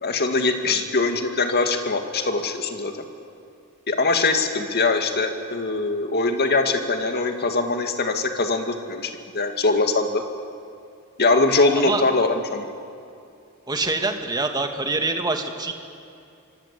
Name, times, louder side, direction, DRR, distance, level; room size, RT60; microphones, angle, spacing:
voice 1, 0.0-2.9 3.9-10.2 11.2-12.7, left 3 dB, 45° left, 5 dB, 2.1 m, -22 dB
voice 2, 13.7-15.7, right 3 dB, 20° right, 4 dB, 2.1 m, -25 dB
26.0 x 24.0 x 8.4 m, 2.5 s
head